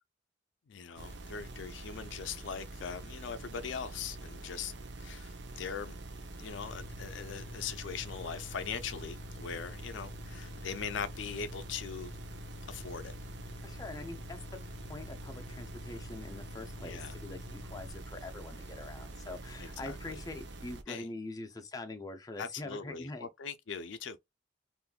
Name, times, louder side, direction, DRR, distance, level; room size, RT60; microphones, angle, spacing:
voice 1, 0.7-4.7 5.0-5.9 6.4-12.1 12.7-13.2 16.9-17.1 19.6-20.2 20.9-21.1 22.4-24.2, left 6 dB, 75° left, 0.4 m, -41 dB
sound 1, 1.0-20.8, right 2 dB, 60° right, 0.7 m, -46 dB
sound 2, 6.5-17.9, left 4 dB, 80° right, 1.1 m, -49 dB
voice 2, 13.6-23.3, left 2 dB, 20° left, 0.5 m, -44 dB
3.6 x 2.5 x 2.3 m
head